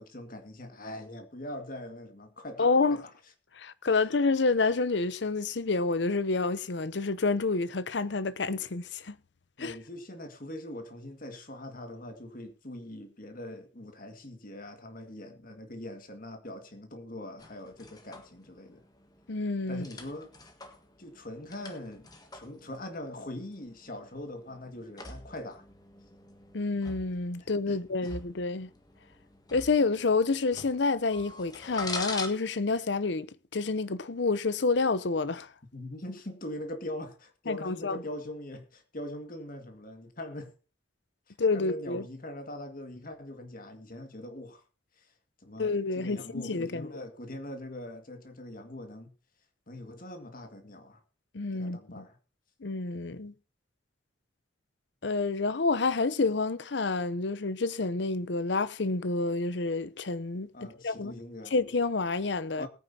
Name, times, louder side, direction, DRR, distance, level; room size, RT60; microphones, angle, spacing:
voice 1, 0.0-3.1 9.6-18.8 19.7-20.3 21.0-25.6 27.4-28.1 35.7-40.5 41.3-44.6 45.0-45.1 45.4-49.1 49.7-51.0 51.5-52.2 60.5-61.5 62.6-62.7, left 1 dB, 45° left, 2.0 m, -42 dB
voice 2, 2.6-3.0 3.6-9.2 9.6-9.7 19.3-19.8 26.5-28.7 29.5-33.3 33.5-35.5 37.5-38.0 41.4-42.0 45.6-46.9 51.3-52.0 52.6-53.3 55.0-60.5 60.8-61.1 61.5-62.7, left 3 dB, 65° left, 0.7 m, -28 dB
sound 1, 17.4-32.3, left 3 dB, 20° left, 1.5 m, -45 dB
20.5 x 9.2 x 2.8 m
head